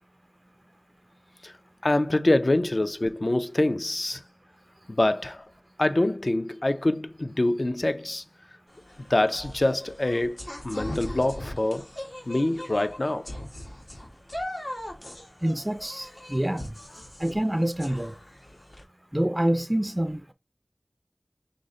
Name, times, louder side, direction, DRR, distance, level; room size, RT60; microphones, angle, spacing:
voice 1, 1.8-4.2 4.9-5.4 5.8-8.2 9.1-11.8 12.3-13.3, left 1 dB, 65° left, 0.4 m, -25 dB
sound 1, 8.7-18.8, left 1 dB, 85° left, 1.4 m, -40 dB
voice 2, 15.4-16.7 17.2-18.1 19.1-20.2, right 1 dB, 25° right, 0.3 m, -26 dB
5.2 x 2.1 x 3.7 m
wide cardioid pair, 45°, 0 cm